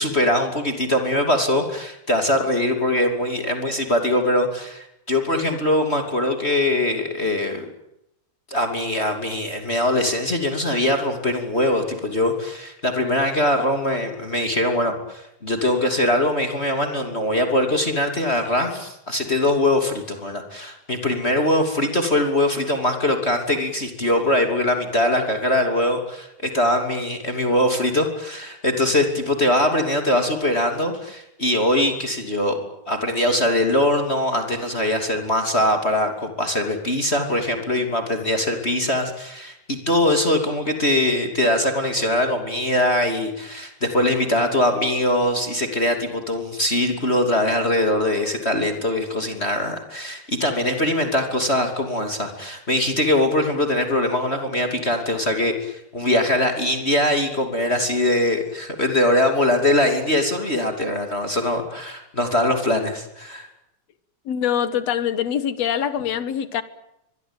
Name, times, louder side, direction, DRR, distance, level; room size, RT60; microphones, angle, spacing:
voice 1, 0.0-7.6 8.5-32.6 32.9-63.5, left 1 dB, 20° left, 3.0 m, -22 dB
voice 2, 64.3-66.6, left 9 dB, 65° left, 2.5 m, -24 dB
24.0 x 22.5 x 9.0 m
omnidirectional pair, 3.4 m